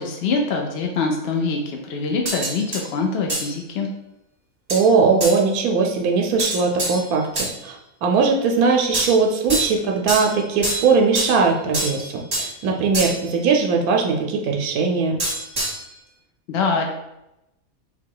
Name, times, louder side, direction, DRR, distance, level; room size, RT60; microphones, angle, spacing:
voice 1, 0.0-3.9 16.5-16.9, left 4 dB, 65° left, 2 dB, 0.6 m, -24 dB
sound 1, 2.3-2.9 3.3-3.5 4.7-4.9 5.2-5.4 6.4-7.6 8.9-9.8 10.1-11.4 11.7-12.5 12.9-13.3 15.2-15.9, right 1 dB, 30° right, 1.3 m, -26 dB
voice 2, 4.7-15.2, right 4 dB, 85° right, 1 dB, 1.1 m, -20 dB
3.9 x 2.2 x 4.5 m, 0.89 s
omnidirectional pair, 1.5 m